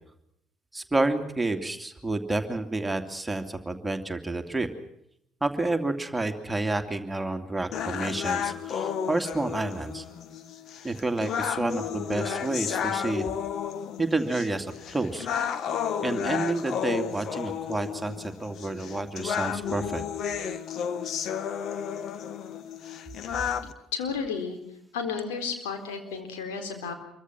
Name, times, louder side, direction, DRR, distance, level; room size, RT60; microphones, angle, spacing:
voice 1, 0.7-4.7 5.4-10.0 10.8-13.3 14.0-15.3 16.0-20.0, right 2 dB, 10° right, 5 dB, 2.7 m, -29 dB
sound 1, 7.7-23.7, left 8 dB, 55° left, 1.5 m, -32 dB
voice 2, 23.9-24.6 24.9-26.9, left 5 dB, 80° left, 6 dB, 4.1 m, -32 dB
27.0 x 23.5 x 6.1 m, 0.76 s
hypercardioid pair, 55°, 0 cm